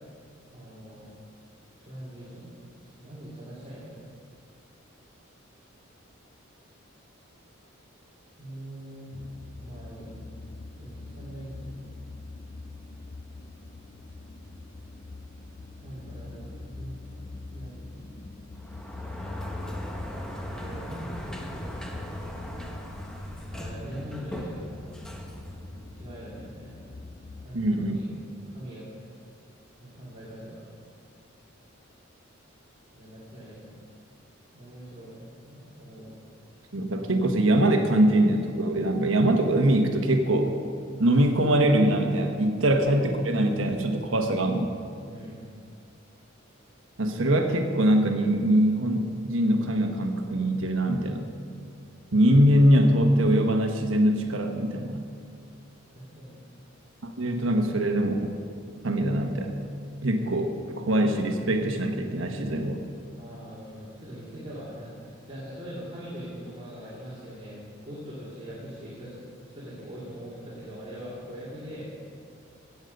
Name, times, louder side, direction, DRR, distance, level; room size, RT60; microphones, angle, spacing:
voice 1, 0.5-1.1 1.8-4.0 8.4-9.1 9.6-10.2 10.7-11.9 15.8-17.2 17.5-18.2 20.5-21.8 23.5-24.9 25.9-26.7 27.4-28.1 28.5-28.9 29.8-30.6 32.9-33.8 34.5-35.1 35.4-36.3 45.1-45.4 55.9-56.4 63.2-69.3 69.5-71.9, equal, 30° right, -9 dB, 2.6 m, -42 dB
sound 1, 9.1-27.5, left 3 dB, 35° left, 0.5 m, -44 dB
Sliding door, 18.6-26.3, equal, 5° left, 1.0 m, -38 dB
voice 2, 27.5-28.0 36.7-40.5 41.0-44.7 47.0-51.2 52.1-55.0 57.0-58.3 58.8-59.5 60.0-60.5 60.7-62.8, right 1 dB, 70° right, 4 dB, 1.2 m, -23 dB
16.0 x 8.2 x 5.3 m, 2.3 s
head